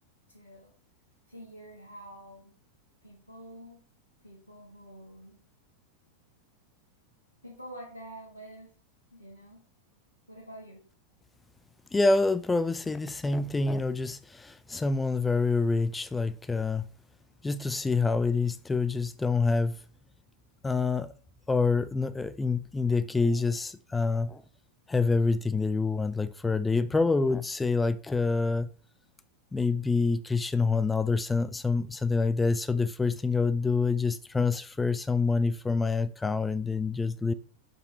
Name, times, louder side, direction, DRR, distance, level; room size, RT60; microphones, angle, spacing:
voice 1, 0.3-0.7 1.3-2.5 3.0-3.8 4.2-5.4 7.4-8.7 9.1-9.6 10.3-10.8, right 1 dB, 90° left, 1.6 m, -47 dB
voice 2, 11.9-16.9 17.4-19.8 20.6-21.1 21.5-24.4 24.9-28.7 29.5-37.3, left 4 dB, 10° left, 0.5 m, -27 dB
6.5 x 5.3 x 4.1 m
figure-of-eight pair, 90°, 0 cm